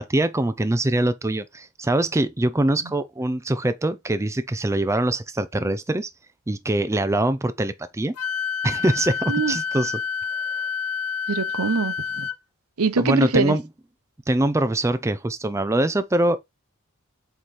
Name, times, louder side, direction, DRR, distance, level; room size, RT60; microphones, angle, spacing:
voice 1, 0.0-6.1 6.5-8.1 8.6-10.0 13.0-13.6 14.3-16.4, right 1 dB, 15° right, 0.4 m, -23 dB
Wind instrument woodwind instrument, 8.2-12.4, left 6 dB, 75° left, 0.6 m, -28 dB
voice 2, 11.3-12.3 12.8-13.6, right 4 dB, 80° right, 0.7 m, -23 dB
7.9 x 3.0 x 4.1 m
head